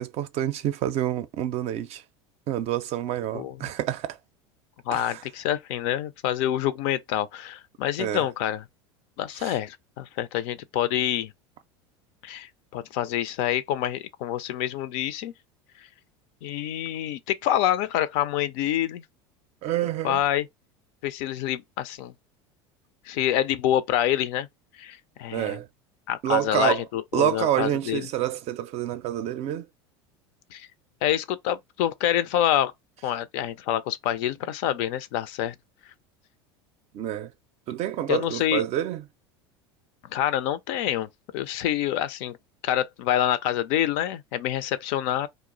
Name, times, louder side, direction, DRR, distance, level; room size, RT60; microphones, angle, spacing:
voice 1, 0.0-2.0 2.5-4.2 4.9-5.2 8.0-8.3 9.4-9.5 19.6-20.2 25.3-25.7 26.2-26.8 27.1-29.7 36.9-37.3 37.7-39.0, right 12 dB, 50° right, 0.4 m, -27 dB
voice 2, 3.3-3.7 4.9-8.7 9.2-11.3 12.2-15.3 16.4-19.0 20.0-20.5 21.0-22.1 23.1-24.5 24.8-25.6 26.1-28.1 30.5-30.7 31.0-32.7 33.0-35.5 38.1-38.6 40.1-41.1 41.3-42.4 42.6-45.3, left 11 dB, 65° left, 0.4 m, -27 dB
2.3 x 2.0 x 3.7 m
hypercardioid pair, 90°, 14 cm